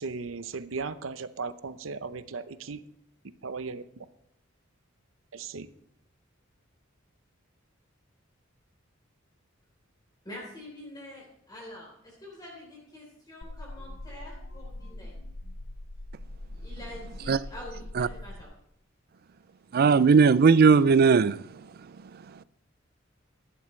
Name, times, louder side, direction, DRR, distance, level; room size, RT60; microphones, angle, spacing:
voice 1, 0.0-2.8 3.4-4.0 5.3-5.7, right 4 dB, 80° right, 0.7 m, -36 dB
voice 2, 10.2-15.2 16.5-18.5, left 1 dB, 20° left, 3.7 m, -46 dB
sound 1, 13.4-18.4, left 1 dB, 80° left, 0.9 m, -42 dB
voice 3, 19.7-21.4, right 5 dB, 50° right, 0.4 m, -18 dB
15.0 x 11.0 x 3.2 m
head